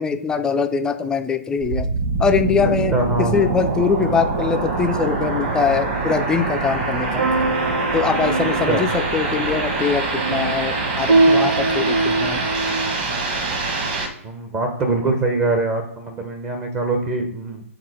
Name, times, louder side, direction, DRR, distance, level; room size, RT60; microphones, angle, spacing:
voice 1, 0.0-1.9 2.2-7.3 7.9-12.4, left 5 dB, 10° left, 7 dB, 0.4 m, -22 dB
sound 1, 1.6-14.1, right 3 dB, 40° right, 1.5 m, -24 dB
voice 2, 2.9-3.5 8.7-8.8 14.2-17.6, right 2 dB, 20° right, 3 dB, 0.7 m, -23 dB
sound 2, 7.2-12.9, right 3 dB, 80° right, 0.9 m, -22 dB
6.2 x 4.2 x 3.9 m, 0.78 s
figure-of-eight pair, 130°, 8 cm